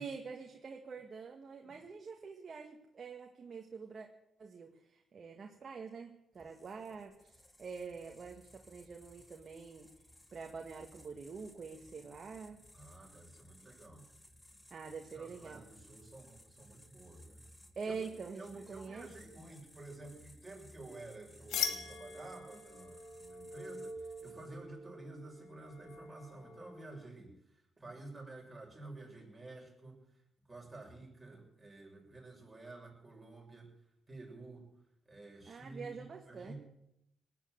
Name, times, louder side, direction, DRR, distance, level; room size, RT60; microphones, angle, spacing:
voice 1, 0.0-4.1 4.4-9.9 10.3-12.6 14.7-15.6 17.8-19.1 35.5-36.5, right 5 dB, 40° right, 2 dB, 1.9 m, -46 dB
sound 1, 6.3-24.7, equal, 10° left, 2.0 m, -60 dB
voice 2, 12.7-14.1 14.8-17.4 17.8-18.1 18.3-30.0 30.5-33.7 34.1-34.7 35.1-36.6, right 2 dB, 15° right, -2 dB, 6.9 m, -51 dB
sound 2, 21.5-27.1, left 5 dB, 80° left, 2.7 m, -43 dB
19.5 x 9.5 x 7.8 m, 0.81 s
cardioid pair, 90°, 0 cm